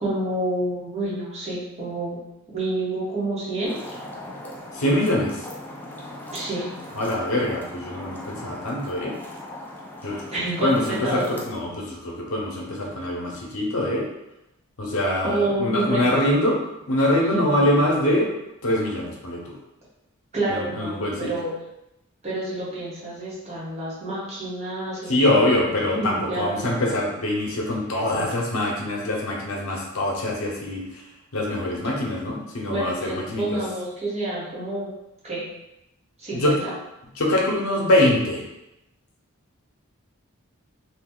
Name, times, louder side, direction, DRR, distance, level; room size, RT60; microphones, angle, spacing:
voice 1, 0.0-2.2 2.5-3.8 6.3-6.6 10.3-11.4 15.2-16.2 17.3-17.8 20.3-21.5 22.2-25.7 25.9-27.0 32.7-34.9 35.2-35.4 36.2-36.7, right 1 dB, 30° right, -8 dB, 1.1 m, -28 dB
sound 1, 3.6-11.5, left 1 dB, 10° left, 0.4 m, -39 dB
voice 2, 4.7-5.4 6.9-9.1 10.0-10.2 10.6-14.1 14.8-16.6 16.9-18.3 18.6-19.6 20.5-21.3 25.1-31.0 31.3-33.6 36.3-36.5 37.1-38.4, left 1 dB, 80° left, -2 dB, 0.8 m, -24 dB
2.7 x 2.3 x 3.7 m, 0.90 s
head